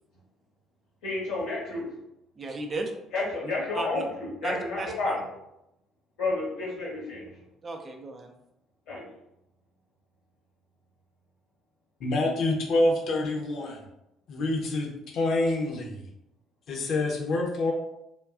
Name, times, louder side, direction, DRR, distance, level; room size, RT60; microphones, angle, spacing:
voice 1, 1.0-1.9 3.1-5.2 6.2-7.4 8.9-9.1, left 2 dB, 75° left, -6 dB, 1.1 m, -31 dB
voice 2, 2.4-2.9 3.4-4.0 4.4-5.2 7.6-8.3, right 2 dB, 35° right, 3 dB, 0.5 m, -35 dB
voice 3, 12.0-13.9 14.3-16.1 16.7-17.7, left 2 dB, 55° left, 0 dB, 0.7 m, -27 dB
3.6 x 2.3 x 2.4 m, 0.84 s
figure-of-eight pair, 50°, 0 cm